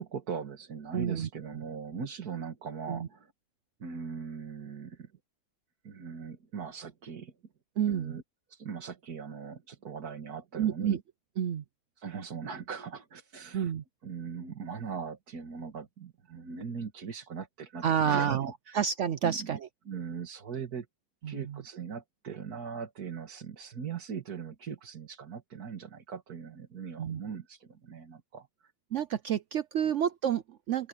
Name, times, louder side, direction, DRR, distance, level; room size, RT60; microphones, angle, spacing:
voice 1, 0.0-3.3 3.8-5.1 5.8-7.3 7.9-8.2 8.5-11.0 12.0-13.7 14.0-18.4 18.7-18.8 19.2-19.6 19.9-20.9 21.2-28.7 29.8-29.9, right 6 dB, 80° right, 2.3 m, -40 dB
voice 2, 0.9-1.3 2.9-3.1 7.8-8.2 10.6-11.0 11.4-11.6 13.5-13.8 17.8-19.6 21.2-21.6 27.0-27.2 28.9-30.9, right 8 dB, 65° right, 0.9 m, -29 dB
open air
omnidirectional pair, 1.6 m